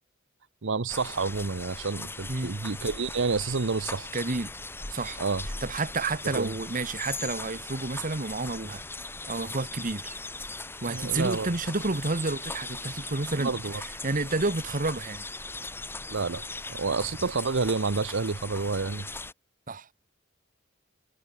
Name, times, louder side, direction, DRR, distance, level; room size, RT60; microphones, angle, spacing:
voice 1, 0.6-4.1 5.2-5.4 6.3-6.5 10.9-11.5 13.4-13.8 16.1-16.4 16.7-19.1, right 4 dB, 65° right, 0.8 m, -29 dB
sound 1, 0.9-19.3, left 3 dB, 10° left, 1.8 m, -39 dB
voice 2, 4.1-4.5 4.9-5.2 5.6-8.8 9.3-10.2 10.8-13.5 13.8-15.2 19.7-19.9, right 3 dB, 40° right, 1.3 m, -30 dB
head